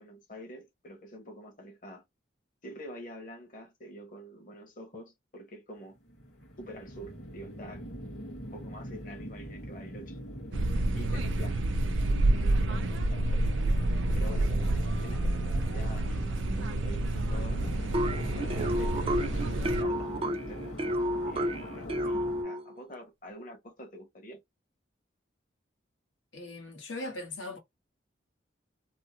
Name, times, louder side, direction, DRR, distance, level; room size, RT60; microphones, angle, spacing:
voice 1, 0.0-2.0 2.6-6.0 6.6-7.8 8.5-10.2 10.5-10.6 10.9-11.6 12.3-13.5 14.1-17.8 18.0-20.6 21.3-24.4, equal, 45° left, 1.0 m, -46 dB
sound 1, 5.9-22.4, equal, 60° left, 1.7 m, -42 dB
sound 2, 10.5-19.8, right 2 dB, 85° right, 0.5 m, -29 dB
sound 3, 17.9-22.7, equal, 30° right, 0.4 m, -31 dB
voice 2, 26.3-27.6, left 2 dB, 80° left, 1.2 m, -39 dB
3.5 x 2.1 x 2.8 m
head